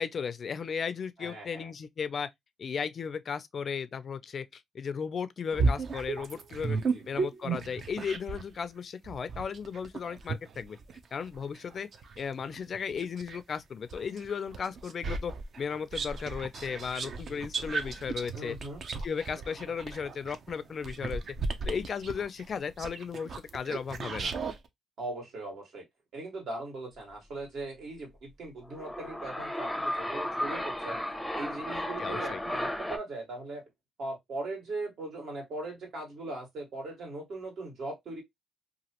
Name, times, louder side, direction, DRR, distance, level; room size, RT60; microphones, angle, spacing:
voice 1, 0.0-2.3 2.6-6.8 7.1-10.8 11.1-11.9 12.2-18.5 19.0-21.2 21.6-24.3 32.0-32.4, left 6 dB, 50° left, 0.3 m, -35 dB
voice 2, 1.2-1.7 6.6-7.2 18.4-18.8 25.0-25.8 26.1-31.0 31.4-33.6 34.0-38.2, right 2 dB, 70° right, 1.8 m, -39 dB
sound 1, 5.5-8.5 9.0-13.4 13.9-24.6, right 4 dB, 55° right, 0.5 m, -34 dB
sound 2, 28.6-33.0, left 1 dB, 5° left, 0.6 m, -34 dB
3.0 x 2.4 x 2.8 m
cardioid pair, 90°, 0 cm